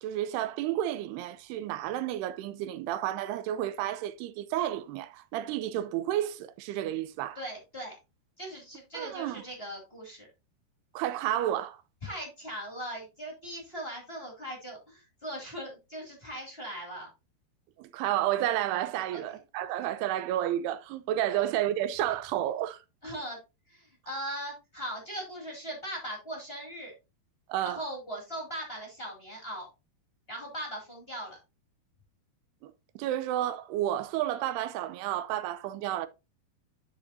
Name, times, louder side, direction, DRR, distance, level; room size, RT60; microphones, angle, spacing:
voice 1, 0.0-7.4 8.9-9.4 10.9-11.8 17.8-22.8 27.5-27.8 32.6-36.1, right 12 dB, 85° right, 2.7 m, -31 dB
voice 2, 7.3-8.0 8.4-10.3 12.0-17.1 19.1-19.2 21.3-21.4 23.0-23.4 23.7-26.9 27.6-29.7 30.3-31.4, right 1 dB, 20° left, 1.7 m, -39 dB
11.0 x 5.8 x 2.6 m
omnidirectional pair, 4.7 m